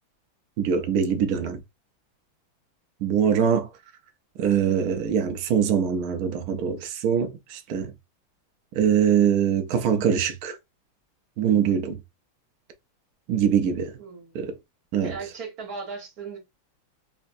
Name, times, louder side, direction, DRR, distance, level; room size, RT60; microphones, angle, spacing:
voice 1, 0.6-1.6 3.0-3.7 4.4-7.9 8.8-10.6 11.4-12.0 13.3-13.9 14.3-14.5 14.9-15.1, right 8 dB, 80° right, 0.8 m, -23 dB
voice 2, 14.0-14.4 15.0-16.4, right 4 dB, 50° right, 1.7 m, -37 dB
3.9 x 2.5 x 2.6 m
omnidirectional pair, 2.2 m